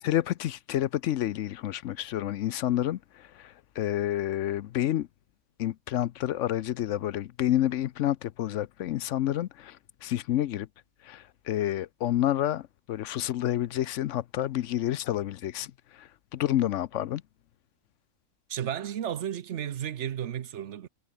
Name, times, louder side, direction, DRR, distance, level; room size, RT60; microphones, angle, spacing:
voice 1, 0.0-5.1 5.6-10.7 11.0-17.2, left 12 dB, 65° left, 0.8 m, -29 dB
voice 2, 18.5-20.9, right 10 dB, 60° right, 1.0 m, -33 dB
omnidirectional pair, 1.5 m